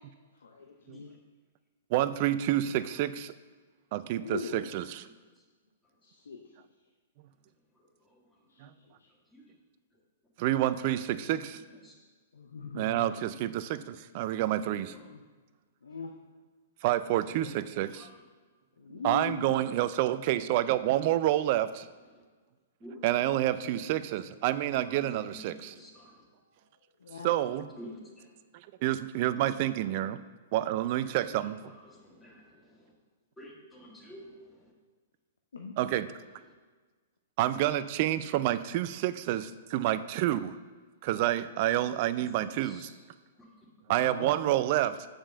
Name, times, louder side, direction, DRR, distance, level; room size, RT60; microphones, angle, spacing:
voice 1, 0.4-1.1 4.2-4.7 6.3-6.4 8.6-8.7 12.3-13.1 15.1-15.2 15.8-16.1 18.8-19.6 23.4-23.6 27.0-27.3 35.5-35.7 43.9-44.3, left 4 dB, 75° left, 3 dB, 0.7 m, -40 dB
voice 2, 1.9-3.3 3.9-5.1 8.6-8.7 10.4-11.6 12.7-14.9 16.8-18.1 19.0-21.9 23.0-25.7 27.2-27.7 28.5-30.2 30.5-31.7 35.8-36.1 37.4-40.5 41.0-42.8 43.9-45.1, right 13 dB, 45° right, 14 dB, 0.4 m, -28 dB
voice 3, 17.8-18.1 22.8-23.0 24.8-24.9 25.3-25.4 25.7-26.1 27.8-28.3 31.0-31.2 31.7-32.8 33.4-34.3 42.6-42.9, left 1 dB, 10° left, -3 dB, 2.1 m, -48 dB
7.1 x 5.2 x 6.7 m, 1.4 s
figure-of-eight pair, 110°, 0 cm